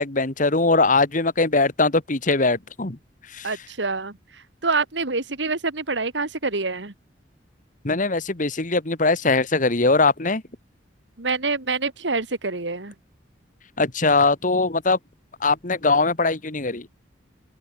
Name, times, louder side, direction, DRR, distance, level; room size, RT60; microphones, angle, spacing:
voice 1, 0.0-3.0 3.3-3.5 7.8-10.4 13.8-15.0 15.4-16.9, left 3 dB, 45° left, 1.8 m, -21 dB
voice 2, 3.4-6.9 11.2-12.9, right 3 dB, 75° right, 2.4 m, -26 dB
open air
head